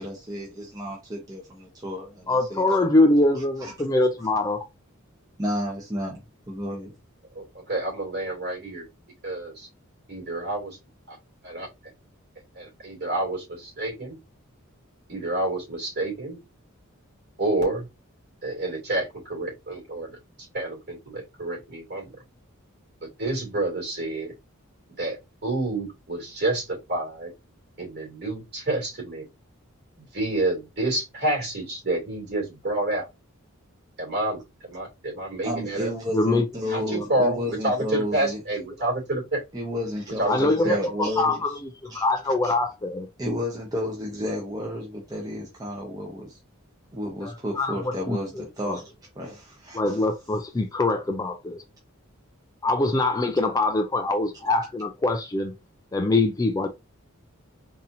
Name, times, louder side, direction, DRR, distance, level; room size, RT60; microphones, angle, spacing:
voice 1, 0.0-2.9 3.3-3.7 5.4-6.9 35.4-38.4 39.5-41.4 41.9-42.0 42.4-42.5 43.2-46.4 46.9-50.0, equal, 15° right, 0.9 m, -32 dB
voice 2, 2.3-4.6 36.1-36.4 40.3-43.1 47.2-48.2 48.7-48.8 49.7-51.6 52.6-55.5 55.9-56.7, left 2 dB, 15° left, 0.3 m, -23 dB
voice 3, 7.3-8.9 9.2-9.7 10.1-10.6 11.4-11.7 12.6-14.2 15.1-16.4 17.4-17.9 18.4-20.2 20.5-22.1 23.0-24.3 25.0-25.2 25.4-27.3 27.8-29.3 30.0-33.1 34.0-35.9 36.7-39.4 40.2-41.2, right 2 dB, 50° right, 2.5 m, -28 dB
4.1 x 2.7 x 2.6 m
head